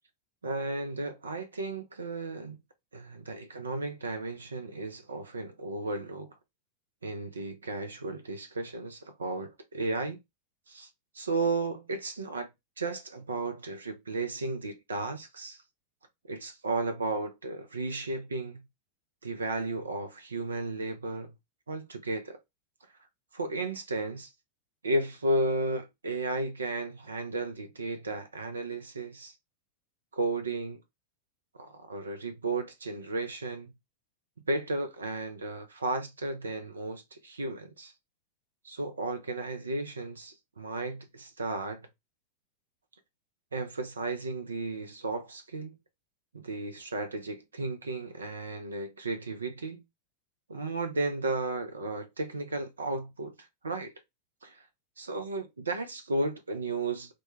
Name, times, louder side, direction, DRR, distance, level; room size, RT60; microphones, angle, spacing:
voice 1, 0.4-2.6 2.9-6.3 7.0-10.2 10.7-10.9 11.1-12.5 12.8-15.6 16.2-18.6 19.2-21.3 21.7-22.4 23.3-24.3 24.8-29.3 30.1-30.8 31.6-33.7 34.5-37.9 38.6-41.8 43.5-45.7 46.3-49.8 50.5-53.9 54.4-54.6 55.0-57.1, right 2 dB, 80° right, 0.4 m, -34 dB
2.2 x 2.1 x 3.0 m
figure-of-eight pair, 95°, 0 cm